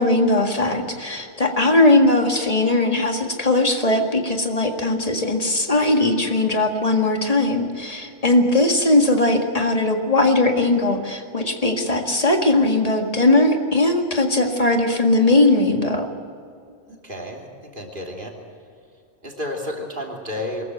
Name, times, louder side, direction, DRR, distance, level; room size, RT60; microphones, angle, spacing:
voice 1, 0.0-16.1, left 2 dB, 30° left, 3 dB, 2.0 m, -19 dB
voice 2, 16.9-18.3 19.2-20.6, left 1 dB, 45° right, 0 dB, 3.4 m, -31 dB
23.5 x 14.5 x 7.9 m, 2.4 s
omnidirectional pair, 1.2 m